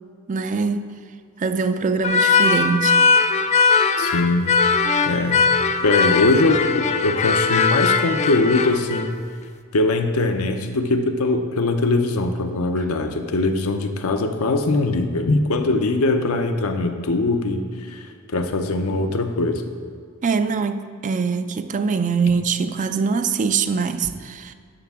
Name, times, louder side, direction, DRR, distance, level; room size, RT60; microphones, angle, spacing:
voice 1, 0.3-0.9 1.4-3.0 20.2-24.5, right 5 dB, 35° right, 0.4 m, -23 dB
sound 1, 2.0-9.1, left 5 dB, 30° left, 0.4 m, -19 dB
voice 2, 4.0-4.6 5.1-5.5 5.8-9.2 9.7-19.6, left 2 dB, 80° left, 0.7 m, -21 dB
11.5 x 5.8 x 3.6 m
head